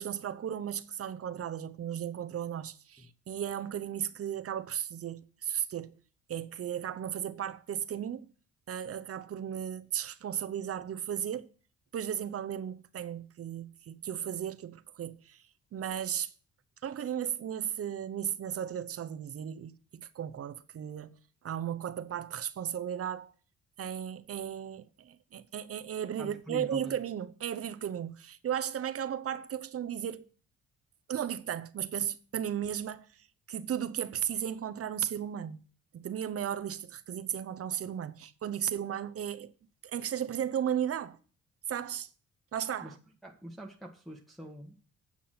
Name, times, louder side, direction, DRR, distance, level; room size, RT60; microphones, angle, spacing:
voice 1, 0.0-5.9 6.3-8.3 8.7-11.5 11.9-15.4 15.7-16.3 16.8-19.7 20.1-21.1 21.4-23.3 23.8-30.3 31.1-33.1 33.5-35.6 35.9-39.5 39.8-41.2 41.7-42.1 42.5-42.9, right 9 dB, 50° right, 0.8 m, -35 dB
voice 2, 26.2-27.0 42.8-42.9 43.2-44.7, equal, ahead, 1.4 m, -44 dB
8.7 x 6.0 x 5.8 m
cardioid pair, 90°, 30 cm